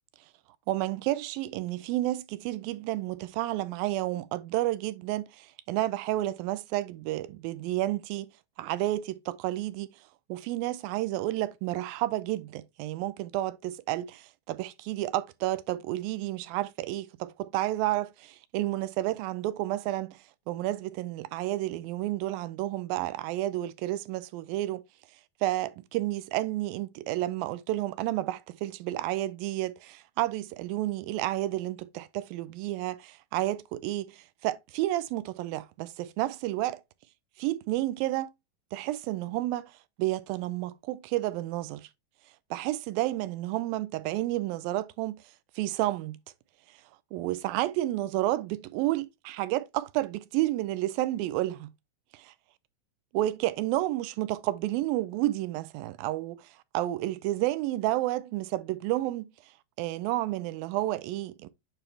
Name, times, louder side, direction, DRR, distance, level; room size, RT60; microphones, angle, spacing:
voice 1, 0.7-8.3 8.6-9.9 10.3-24.8 25.4-36.8 37.4-38.3 38.7-41.9 42.5-45.2 45.6-46.2 47.1-51.7 52.1-52.3 53.1-56.5 56.7-59.3 59.8-61.5, right 16 dB, 85° right, 2.4 m, -31 dB
8.9 x 4.3 x 3.2 m
omnidirectional pair, 4.2 m